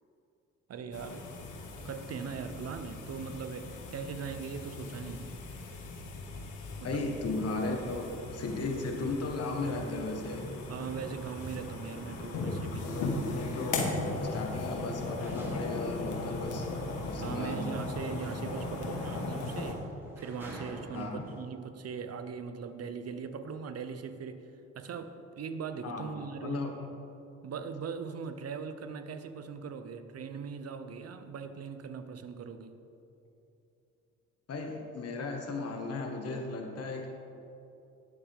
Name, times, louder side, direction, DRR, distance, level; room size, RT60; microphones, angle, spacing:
voice 1, 0.7-1.3 1.8-5.3 6.8-7.2 10.7-13.0 17.2-19.9 20.2-24.4 24.7-26.6 27.4-32.7, right 6 dB, 55° right, 9 dB, 0.9 m, -40 dB
sound 1, 0.9-19.7, left 3 dB, 80° left, 1.6 m, -38 dB
sound 2, 6.4-6.8 7.1-21.5, right 1 dB, 10° right, 3.0 m, -49 dB
voice 2, 6.8-10.5 12.9-13.8 14.2-16.7 17.1-17.7 20.9-21.3 25.8-26.1 26.4-26.7 34.5-37.1, left 3 dB, 55° left, 2 dB, 1.5 m, -36 dB
18.5 x 7.3 x 3.7 m, 2.8 s
cardioid pair, 90°, 30 cm